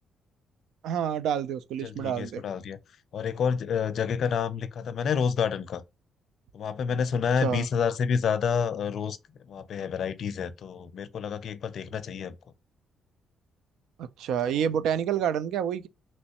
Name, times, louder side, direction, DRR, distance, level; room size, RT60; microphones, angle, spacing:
voice 1, 0.8-2.4 7.4-7.7 14.0-15.9, right 9 dB, 80° right, 0.3 m, -28 dB
voice 2, 1.8-2.8 3.1-5.8 6.5-9.2 9.5-12.4, left 6 dB, 65° left, 0.4 m, -29 dB
3.1 x 3.0 x 2.9 m
cardioid pair, 90°, 0 cm